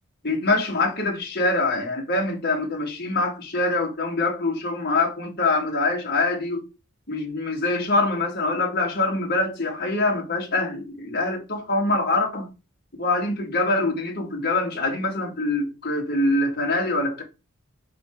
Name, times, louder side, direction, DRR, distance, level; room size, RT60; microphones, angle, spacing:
voice 1, 0.2-6.6 7.1-12.5 13.0-17.2, left 2 dB, 45° left, 1.8 m, -24 dB
5.7 x 3.5 x 4.6 m
head